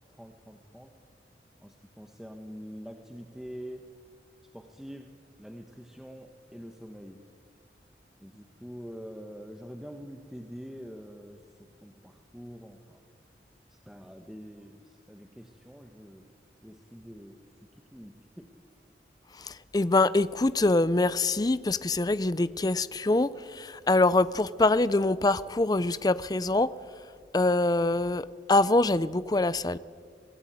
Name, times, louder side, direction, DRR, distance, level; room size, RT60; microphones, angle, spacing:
voice 1, 0.1-0.9 1.6-3.9 4.5-7.2 8.2-13.0 13.7-16.3 16.6-17.6 17.9-18.5, equal, 5° right, 4 dB, 1.1 m, -45 dB
voice 2, 19.4-26.7 27.3-29.8, left 2 dB, 20° left, 16 dB, 0.5 m, -24 dB
24.0 x 17.0 x 9.3 m, 2.1 s
head